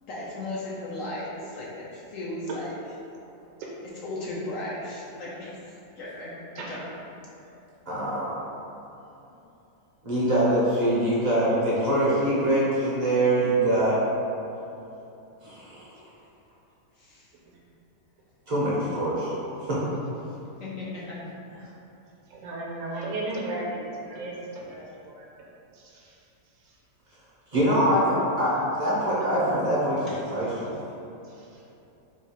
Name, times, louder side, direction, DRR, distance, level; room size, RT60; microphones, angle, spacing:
voice 1, 0.1-2.7 4.0-6.8 17.0-17.3 20.6-21.2 21.5-21.8 30.1-30.2, left 2 dB, 65° left, -6 dB, 0.9 m, -36 dB
voice 2, 7.9-8.3 10.0-14.0 15.4-15.6 18.5-19.3 19.7-19.8 27.5-30.7, right 1 dB, 50° right, -8 dB, 0.5 m, -23 dB
voice 3, 22.3-25.3 25.7-26.2 28.1-28.2 31.4-31.5, right 2 dB, 70° right, -4 dB, 1.0 m, -35 dB
3.7 x 2.3 x 4.1 m, 2.9 s
omnidirectional pair, 1.7 m